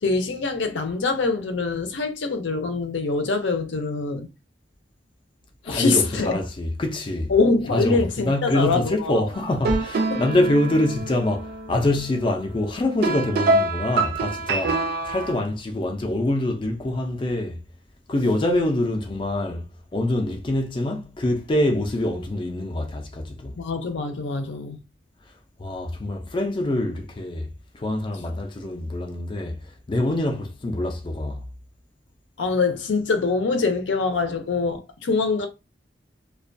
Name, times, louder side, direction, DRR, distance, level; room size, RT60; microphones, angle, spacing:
voice 1, 0.0-4.3 5.7-6.4 7.3-9.2 10.1-10.2 23.6-24.8 32.4-35.5, left 3 dB, 80° left, 0.5 m, -24 dB
voice 2, 5.7-7.3 7.7-17.6 18.1-19.7 19.9-23.5 25.6-27.5 27.7-29.6 29.9-31.5, left 1 dB, 30° left, 0.4 m, -25 dB
sound 1, 9.3-15.4, right 3 dB, 60° right, 0.4 m, -26 dB
2.2 x 2.2 x 2.5 m
head